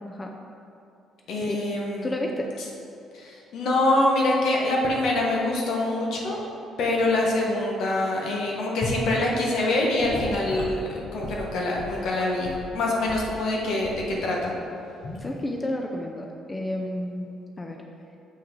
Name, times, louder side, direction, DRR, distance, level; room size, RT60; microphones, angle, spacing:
voice 1, 0.0-0.3 1.4-1.6 2.0-2.5 15.2-17.3 17.6-17.8, left 1 dB, 20° left, 1 dB, 0.6 m, -31 dB
voice 2, 1.3-2.1 3.1-6.4 6.8-14.5, left 2 dB, 70° left, -2 dB, 1.3 m, -25 dB
Gurgling / Sink (filling or washing) / Liquid, 8.8-9.1 10.0-12.7 13.1-13.3 13.8-14.1 15.0-15.3, left 1 dB, 55° left, 1.3 m, -35 dB
7.2 x 5.6 x 3.8 m, 2.7 s
cardioid pair, 90°, 0 cm